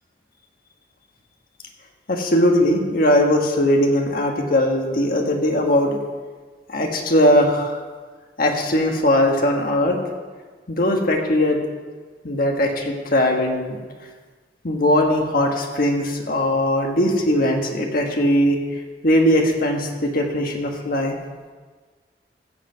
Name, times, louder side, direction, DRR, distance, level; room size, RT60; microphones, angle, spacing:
voice 1, 2.1-6.0 6.7-7.8 8.4-10.0 10.7-11.6 12.2-13.8 14.6-18.6 19.0-21.1, left 1 dB, 55° left, 2 dB, 1.4 m, -19 dB
15.0 x 5.1 x 7.6 m, 1.4 s
head